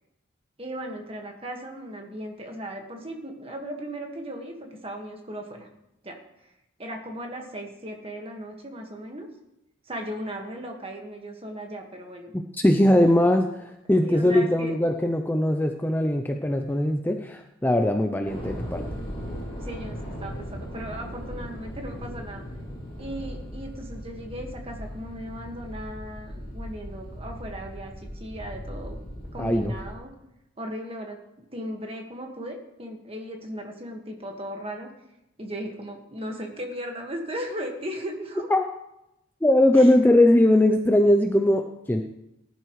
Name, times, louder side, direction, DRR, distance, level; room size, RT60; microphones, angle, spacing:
voice 1, 0.6-4.6 4.8-5.7 6.0-6.2 6.8-9.3 9.9-12.3 14.0-14.8 19.6-22.5 23.0-29.0 29.3-30.1 30.6-31.2 31.5-34.9 35.4-38.5 39.8-39.9, equal, 25° right, 2 dB, 1.6 m, -37 dB
voice 2, 12.5-18.8 29.4-29.7 38.5-38.7 39.4-42.0, left 1 dB, 10° left, 5 dB, 0.5 m, -20 dB
sound 1, 18.3-30.0, equal, 25° left, 5.0 m, -38 dB
18.5 x 11.0 x 3.2 m, 0.86 s
head